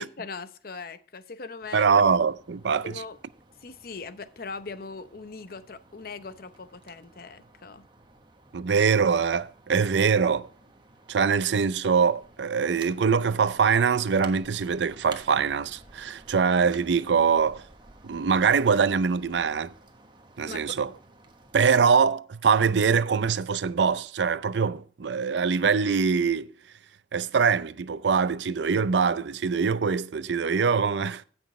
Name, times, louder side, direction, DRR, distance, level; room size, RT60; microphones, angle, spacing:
voice 1, 0.0-1.9 2.7-3.2 3.6-7.9 20.4-20.8, left 4 dB, 55° left, 0.7 m, -40 dB
sound 1, 1.6-21.6, right 3 dB, 25° right, 1.3 m, -53 dB
voice 2, 1.7-2.9 8.5-10.5 11.1-17.6 18.0-19.7 20.4-20.9 21.5-26.5 27.1-31.2, right 6 dB, 80° right, 0.5 m, -23 dB
16.5 x 6.1 x 3.1 m
head